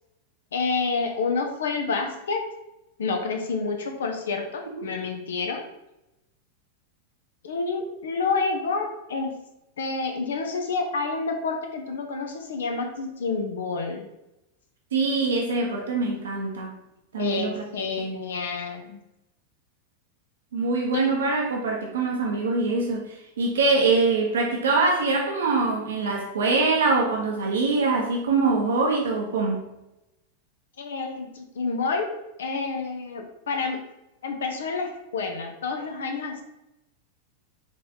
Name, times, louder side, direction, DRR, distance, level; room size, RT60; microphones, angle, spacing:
voice 1, 0.5-2.5 3.0-5.7 7.4-9.4 9.8-14.1 17.2-19.0 20.9-21.2 30.8-32.1 32.4-33.8 34.2-36.4, left 4 dB, 65° left, 4 dB, 0.7 m, -29 dB
voice 2, 14.9-16.8 17.1-17.6 18.0-18.2 20.5-29.7, right 3 dB, 65° right, 0 dB, 0.8 m, -24 dB
5.4 x 3.2 x 2.7 m, 0.90 s
figure-of-eight pair, 90°, 0 cm